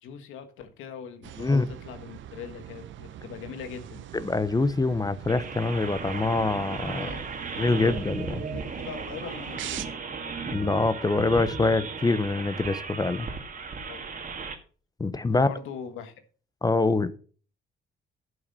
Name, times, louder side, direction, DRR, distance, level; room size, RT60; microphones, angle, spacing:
voice 1, 0.0-4.0 6.9-7.4 8.5-9.8 13.9-14.1 15.3-16.1, left 7 dB, 90° left, 9 dB, 1.5 m, -41 dB
sound 1, 1.2-9.8, right 11 dB, 75° right, 0.8 m, -43 dB
voice 2, 4.1-7.1 7.6-8.4 10.5-13.3 15.0-15.5 16.6-17.1, left 3 dB, 20° left, 15 dB, 0.8 m, -25 dB
sound 2, 5.3-14.5, right 4 dB, 40° right, 1.9 m, -36 dB
11.0 x 6.0 x 5.5 m, 0.41 s
cardioid pair, 90°, 20 cm